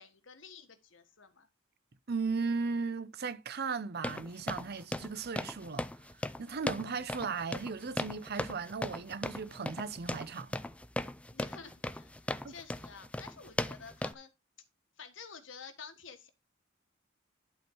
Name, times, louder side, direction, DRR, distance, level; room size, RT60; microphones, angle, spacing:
voice 1, 0.0-1.5 11.3-14.3 15.0-16.3, left 5 dB, 75° left, 1.5 m, -50 dB
voice 2, 2.1-10.6 12.4-12.5, right 4 dB, 55° right, 0.7 m, -36 dB
sound 1, 4.0-14.1, left 1 dB, 5° left, 0.4 m, -38 dB
11.5 x 4.5 x 4.6 m
head